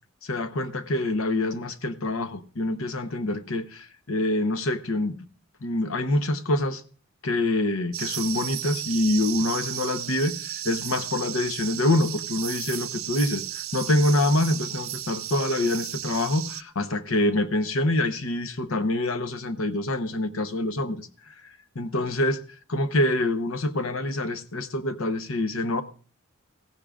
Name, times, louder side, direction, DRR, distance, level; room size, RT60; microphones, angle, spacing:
voice 1, 0.2-5.3 5.6-6.8 7.2-21.3 21.7-22.4 22.7-25.8, left 1 dB, 85° left, 0.9 m, -26 dB
sound 1, 7.9-16.6, right 13 dB, 80° right, 0.6 m, -34 dB
17.0 x 15.0 x 2.5 m
head